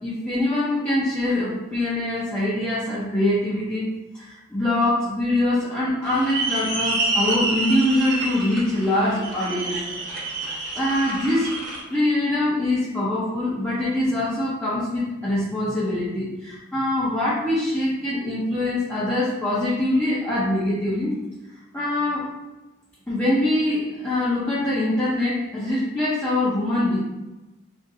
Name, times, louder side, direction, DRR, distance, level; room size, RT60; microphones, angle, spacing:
voice 1, 0.0-3.9 4.1-9.8 10.7-11.5 11.9-21.2 21.7-22.3 23.1-27.0, left 1 dB, 10° left, -10 dB, 0.5 m, -23 dB
sound 1, 6.0-11.8, right 2 dB, 55° right, 0.8 m, -28 dB
2.9 x 2.5 x 2.6 m, 1.0 s
head